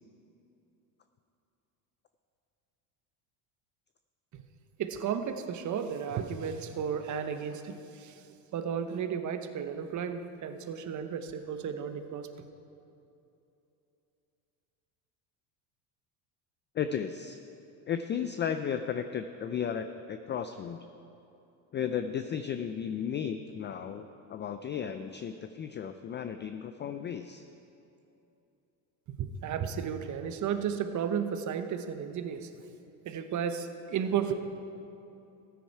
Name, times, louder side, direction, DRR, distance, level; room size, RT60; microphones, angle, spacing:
voice 1, 4.8-8.2 8.5-12.5 29.1-32.5 33.0-34.3, right 7 dB, 40° right, 8 dB, 0.9 m, -33 dB
voice 2, 16.7-17.4 17.9-20.8 21.7-27.4, left 8 dB, 25° left, 9 dB, 0.3 m, -34 dB
14.0 x 9.4 x 4.6 m, 2.8 s
supercardioid pair, 95°, 46 cm